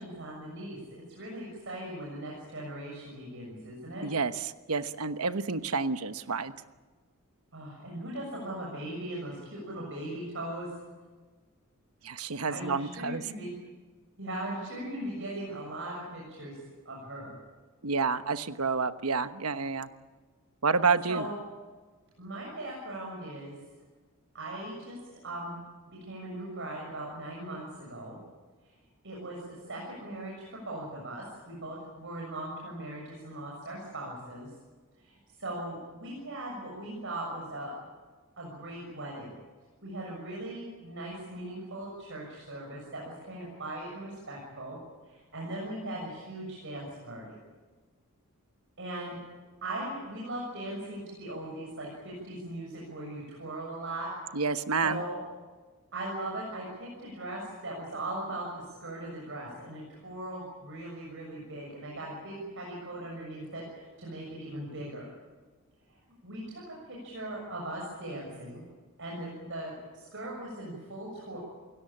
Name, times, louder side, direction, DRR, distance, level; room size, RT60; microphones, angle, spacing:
voice 1, 0.0-4.1 7.5-10.7 12.2-13.5 14.2-16.5 16.8-17.3 21.1-21.3 22.2-23.6 24.3-25.0 25.2-25.6 25.9-28.2 29.0-34.5 35.0-37.7 38.4-39.3 39.8-44.8 45.1-47.4 48.8-49.2 49.6-54.1 54.8-55.2 55.9-58.5 58.8-65.1 66.2-68.6 69.0-71.4, right 1 dB, 60° right, -2 dB, 6.8 m, -39 dB
voice 2, 4.0-6.6 12.0-13.2 17.8-19.9 20.6-21.2 54.3-55.0, right 4 dB, 85° right, 11 dB, 1.2 m, -29 dB
28.5 x 17.5 x 8.8 m, 1.3 s
head